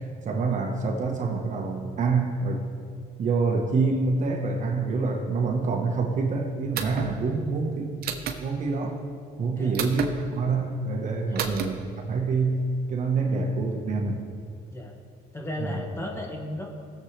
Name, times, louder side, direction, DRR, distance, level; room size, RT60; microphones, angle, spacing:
voice 1, 0.2-2.7 3.2-7.9 8.4-9.0 9.4-11.8 12.1-14.2 15.6-15.8, right 4 dB, 45° right, 2 dB, 1.2 m, -26 dB
sound 1, 6.7-7.1 8.0-8.4 9.7-10.1 11.4-11.7, right 8 dB, 65° right, 1.0 m, -30 dB
voice 2, 9.5-9.9 11.3-11.5 14.7-15.0 15.3-16.7, left 1 dB, 15° left, 0 dB, 1.8 m, -35 dB
17.5 x 7.2 x 3.3 m, 2.4 s
cardioid pair, 110°, 17 cm